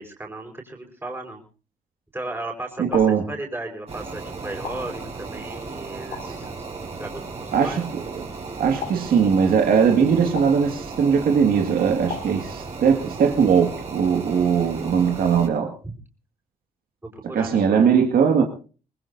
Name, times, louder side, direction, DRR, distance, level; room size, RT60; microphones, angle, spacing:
voice 1, 0.0-1.4 2.1-6.5 7.0-7.8 15.8-15.9 17.0-17.9, right 2 dB, 15° right, 0 dB, 4.7 m, -35 dB
voice 2, 2.8-3.3 6.3-6.4 7.5-7.9 8.1-8.3 8.6-15.7 17.2-18.4, right 6 dB, 70° right, 3 dB, 2.0 m, -20 dB
sound 1, 2.9-3.3 4.6-5.0 6.1-6.5 7.6-7.9 8.8-9.2 10.4-10.7 12.1-12.5, left 6 dB, 85° left, 3.9 m, -36 dB
sound 2, 3.9-15.5, right 4 dB, 40° right, 5.1 m, -36 dB
24.0 x 20.0 x 2.7 m, 0.37 s
cardioid pair, 85°, 16 cm